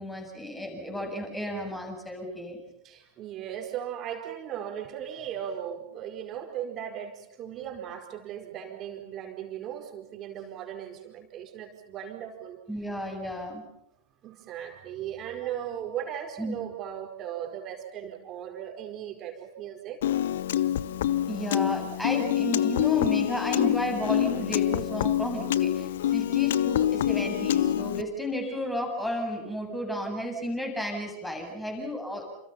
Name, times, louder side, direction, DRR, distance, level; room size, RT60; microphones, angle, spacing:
voice 1, 0.0-2.6 12.7-13.6 16.4-16.6 21.3-32.2, equal, 5° left, 3 dB, 8.0 m, -33 dB
voice 2, 2.8-12.6 14.2-20.0, right 10 dB, 30° right, 3 dB, 4.9 m, -37 dB
Piano, 20.0-28.0, left 11 dB, 60° left, 0.9 m, -26 dB
29.5 x 29.0 x 5.8 m, 0.81 s
figure-of-eight pair, 90°, 0 cm